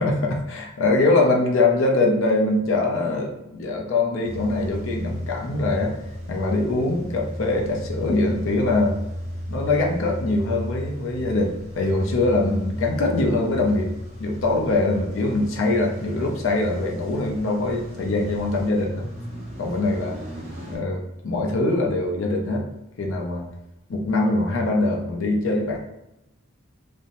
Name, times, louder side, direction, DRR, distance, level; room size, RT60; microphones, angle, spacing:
voice 1, 0.0-6.0 6.3-9.0 9.5-13.9 14.2-19.0 19.6-20.2 20.7-22.7 23.0-23.5 23.9-25.8, left 2 dB, 70° left, 1 dB, 0.5 m, -23 dB
Car / Engine starting / Idling, 4.2-20.8, equal, 30° right, 0.9 m, -34 dB
2.5 x 2.1 x 2.8 m, 0.88 s
head